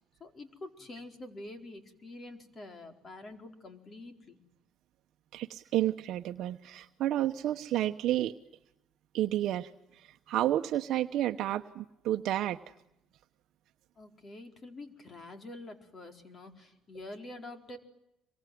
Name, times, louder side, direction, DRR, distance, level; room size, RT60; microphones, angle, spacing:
voice 1, 0.2-4.4 14.0-17.8, left 2 dB, 35° left, 6 dB, 4.6 m, -46 dB
voice 2, 5.3-8.3 9.1-12.6, right 13 dB, 65° right, 6 dB, 1.1 m, -31 dB
26.5 x 23.5 x 9.5 m, 0.84 s
cardioid pair, 115°, 0 cm